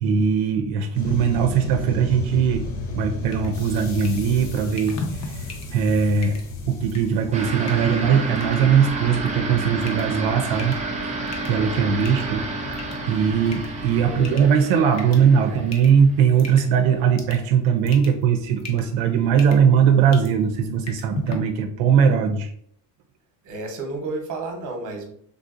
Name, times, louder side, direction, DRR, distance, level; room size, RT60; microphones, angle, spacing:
voice 1, 0.0-2.7 3.0-6.4 6.7-10.8 11.5-12.4 13.1-22.5, right 7 dB, 80° right, 5 dB, 0.6 m, -20 dB
sound 1, 0.9-14.5, left 2 dB, 90° left, 0.9 m, -34 dB
sound 2, 3.2-21.3, left 2 dB, 35° left, 0.6 m, -40 dB
sound 3, 7.3-16.4, right 2 dB, 15° right, 0.3 m, -31 dB
voice 2, 14.0-14.4 15.4-15.7 23.4-25.1, right 2 dB, 40° right, 3 dB, 0.9 m, -32 dB
3.5 x 2.5 x 2.4 m, 0.64 s
cardioid pair, 120°, 49 cm